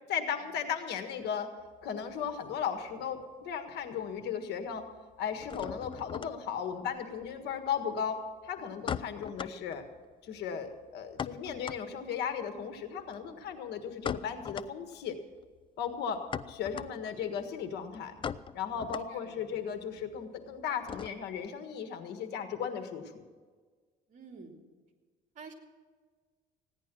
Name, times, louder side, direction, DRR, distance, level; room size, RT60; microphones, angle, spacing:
voice 1, 0.1-1.5 1.8-4.8 5.2-9.8 10.2-15.2 15.8-18.1 18.5-23.2, left 7 dB, 80° left, 8 dB, 1.6 m, -36 dB
sound 1, 1.6-3.2 3.5-4.2 4.4-21.5, left 7 dB, 30° left, 0.4 m, -42 dB
voice 2, 19.1-19.6 19.9-20.0 24.1-24.6 25.3-25.5, right 4 dB, 45° right, 3 dB, 2.8 m, -51 dB
16.0 x 10.5 x 6.1 m, 1.5 s
cardioid pair, 110°, 17 cm